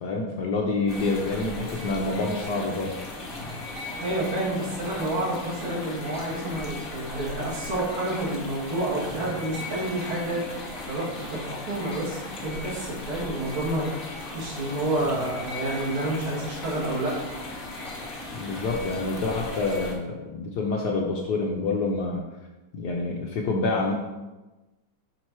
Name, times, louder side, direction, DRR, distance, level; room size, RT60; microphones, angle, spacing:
voice 1, 0.0-2.9 18.3-22.2 22.7-23.9, left 3 dB, 70° left, -1 dB, 1.0 m, -27 dB
sound 1, 0.9-19.9, left 2 dB, 35° left, 1.0 m, -37 dB
voice 2, 4.0-17.1, right 1 dB, 75° right, -6 dB, 2.9 m, -29 dB
6.6 x 4.2 x 4.6 m, 1.1 s
omnidirectional pair, 2.4 m